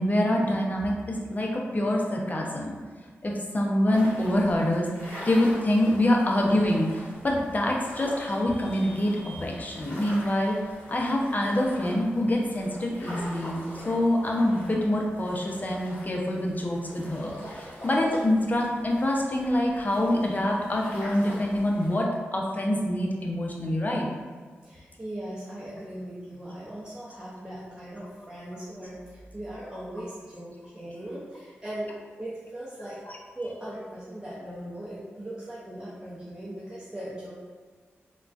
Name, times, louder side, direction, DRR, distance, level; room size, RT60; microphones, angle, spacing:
voice 1, 0.0-2.8 3.2-4.9 5.2-10.6 10.9-24.1, left 1 dB, 35° left, -1 dB, 0.6 m, -25 dB
sound 1, 3.9-22.0, equal, 55° left, 1.4 m, -44 dB
voice 2, 24.6-31.9 32.2-33.0 33.3-37.3, right 1 dB, 15° right, -8 dB, 0.7 m, -39 dB
3.6 x 2.3 x 2.4 m, 1.5 s
cardioid pair, 45°, 5 cm